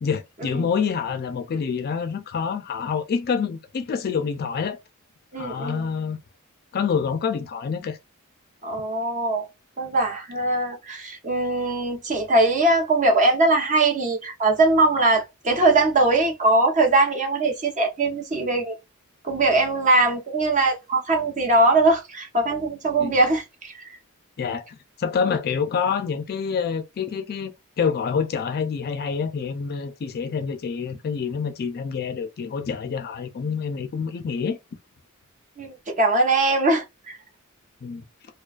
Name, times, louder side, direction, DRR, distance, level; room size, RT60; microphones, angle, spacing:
voice 1, 0.0-4.8 5.4-6.2 6.7-8.0 23.0-23.1 24.4-24.7 25.0-27.5 27.8-34.6 37.8-38.0, left 6 dB, 45° left, 0.3 m, -27 dB
voice 2, 5.3-5.8 8.6-9.5 9.8-18.7 19.2-23.7 35.6-37.2, right 2 dB, 35° right, 0.7 m, -21 dB
2.3 x 2.3 x 2.3 m
head